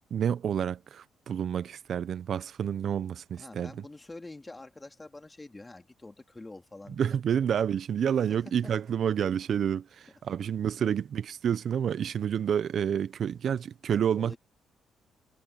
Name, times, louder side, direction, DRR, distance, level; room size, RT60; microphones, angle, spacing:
voice 1, 0.1-3.7 7.0-14.3, right 8 dB, 60° right, 0.6 m, -29 dB
voice 2, 3.4-7.3 8.1-8.7 10.8-10.9 13.9-14.4, left 2 dB, 20° left, 3.4 m, -47 dB
cardioid pair, 70°, 0 cm